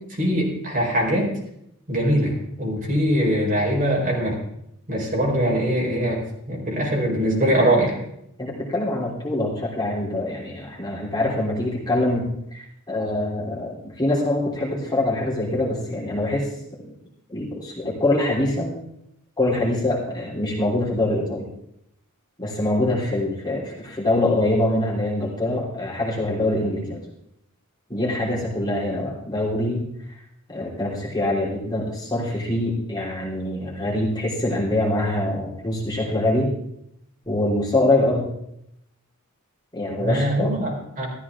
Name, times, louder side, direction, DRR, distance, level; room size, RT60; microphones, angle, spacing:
voice 1, 0.2-1.3 1.9-4.4 4.9-8.0 40.0-41.1, right 1 dB, 40° right, -2 dB, 4.5 m, -22 dB
voice 2, 8.4-16.5 17.3-18.8 19.4-21.5 22.4-27.0 27.9-29.9 30.5-36.5 37.3-38.3 39.7-40.5, left 1 dB, 20° left, -4 dB, 3.4 m, -24 dB
14.0 x 14.0 x 3.7 m, 0.76 s
head